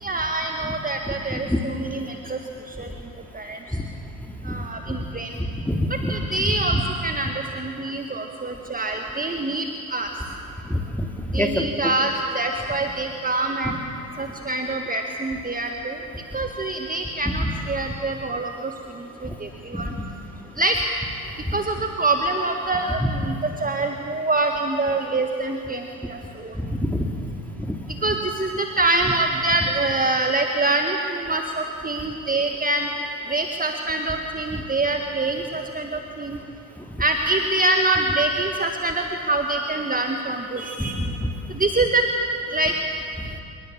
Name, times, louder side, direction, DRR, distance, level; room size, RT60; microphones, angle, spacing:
voice 1, 0.0-2.4 2.7-3.0 3.3-3.8 4.4-5.4 5.9-10.1 11.3-13.8 14.2-16.0 16.3-19.9 20.6-20.8 21.5-26.6 28.0-32.9 33.3-36.4 37.0-41.0 41.5-42.1 42.5-42.7, right 2 dB, 15° right, 3 dB, 1.8 m, -25 dB
voice 2, 1.1-1.6 3.7-3.8 4.4-4.5 4.9-5.0 5.4-6.1 6.7-6.8 10.7-11.7 17.4-17.5 19.7-19.8 21.5-21.6 26.5-27.0 27.6-27.8 40.8-41.3, equal, 5° left, 2 dB, 3.3 m, -26 dB
27.0 x 22.5 x 7.4 m, 2.7 s
figure-of-eight pair, 50°, 49 cm